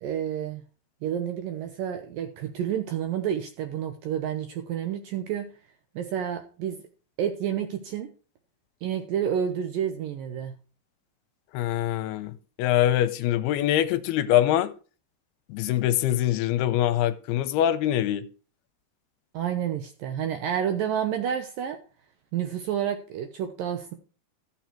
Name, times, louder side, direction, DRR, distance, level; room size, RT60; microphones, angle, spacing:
voice 1, 0.0-0.6 1.0-5.5 6.0-6.8 7.2-8.1 8.8-10.5 19.3-21.8 22.3-23.9, right 9 dB, 75° right, 2.1 m, -29 dB
voice 2, 11.5-14.7 15.5-18.3, left 12 dB, 80° left, 2.6 m, -24 dB
13.0 x 7.1 x 4.5 m
omnidirectional pair, 4.9 m